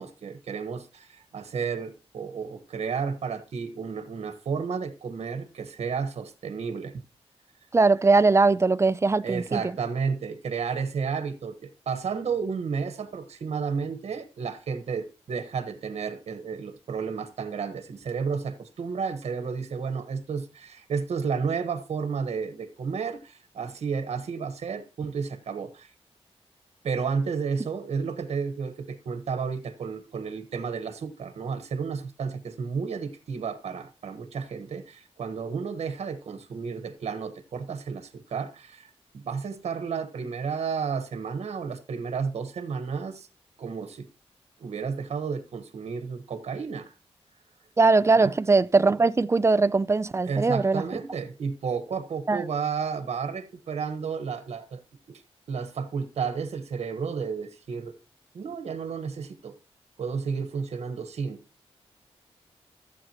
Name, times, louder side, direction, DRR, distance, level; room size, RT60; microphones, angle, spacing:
voice 1, 0.0-7.0 9.2-25.9 26.8-43.3 43.6-44.1 44.6-46.9 48.2-48.3 50.3-54.8 55.1-55.2 55.5-58.0 58.3-59.5 60.0-61.4, right 5 dB, 80° right, 1.3 m, -32 dB
voice 2, 7.7-9.6 47.8-50.8 52.3-52.4, right 3 dB, 25° right, 0.4 m, -20 dB
15.0 x 8.1 x 3.0 m
wide cardioid pair, 110°, 11 cm